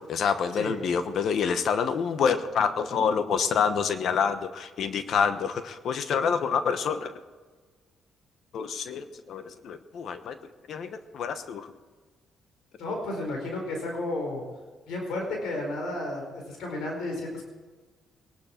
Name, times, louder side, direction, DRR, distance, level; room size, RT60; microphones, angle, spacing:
voice 1, 0.1-7.1 8.5-10.4 10.7-11.7, left 6 dB, 65° left, 10 dB, 1.0 m, -27 dB
voice 2, 12.8-14.4 14.9-16.2 16.5-17.4, left 2 dB, 85° left, 1 dB, 4.8 m, -32 dB
21.5 x 12.0 x 4.5 m, 1.4 s
cardioid pair, 90°, 0 cm